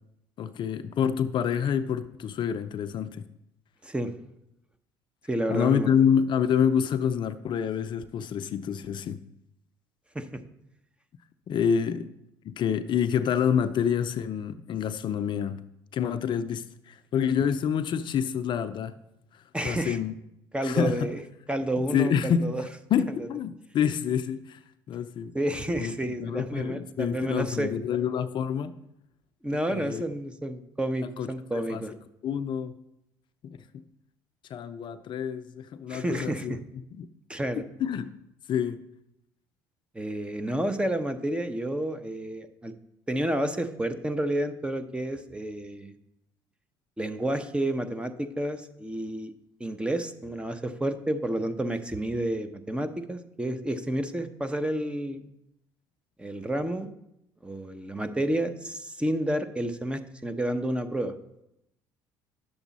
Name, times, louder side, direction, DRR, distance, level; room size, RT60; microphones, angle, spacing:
voice 1, 0.4-3.3 5.5-9.2 11.5-12.1 12.4-15.6 15.9-18.9 19.3-20.1 20.6-21.1 21.8-22.5 22.9-24.6 24.9-25.3 25.8-28.7 29.7-30.1 31.2-31.3 31.7-31.8 32.2-32.7 33.4-33.8 34.5-36.6 36.9-37.1 37.6-38.1 38.5-38.8, left 8 dB, 50° left, 11 dB, 0.5 m, -27 dB
voice 2, 5.3-5.9 10.1-10.4 19.5-20.0 20.5-21.2 21.5-22.6 25.3-27.7 29.4-31.9 35.9-36.6 37.3-37.6 39.9-42.7 43.1-45.9 47.0-49.3 49.6-55.3 56.2-56.9 57.4-61.1, right 1 dB, 10° right, 10 dB, 0.8 m, -30 dB
10.0 x 7.0 x 4.1 m, 0.84 s
supercardioid pair, 75°, 10 cm